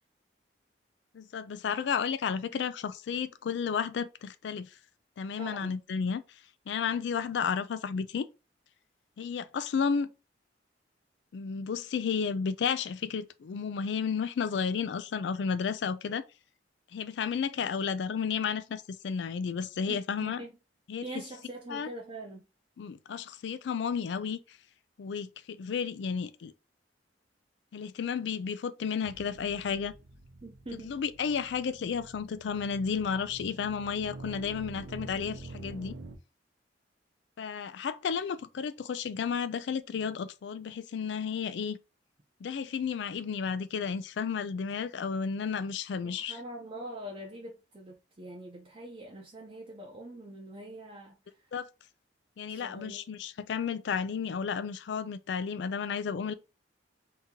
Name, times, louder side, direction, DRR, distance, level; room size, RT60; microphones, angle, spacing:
voice 1, 1.1-4.7 5.2-6.2 6.7-8.3 9.2-10.1 11.3-16.2 16.9-20.4 20.9-21.0 21.7-21.9 22.8-24.4 25.0-26.5 27.7-29.9 30.8-35.9 37.4-41.8 42.4-46.4 51.5-51.7 52.4-56.3, left 6 dB, 70° left, 0.3 m, -32 dB
voice 2, 5.4-5.8 19.9-20.6 21.0-22.5 30.4-31.0 46.0-51.5 52.5-53.2, right 1 dB, 30° right, 0.6 m, -44 dB
sound 1, 29.0-36.2, right 2 dB, 80° right, 0.7 m, -47 dB
2.8 x 2.8 x 3.6 m
head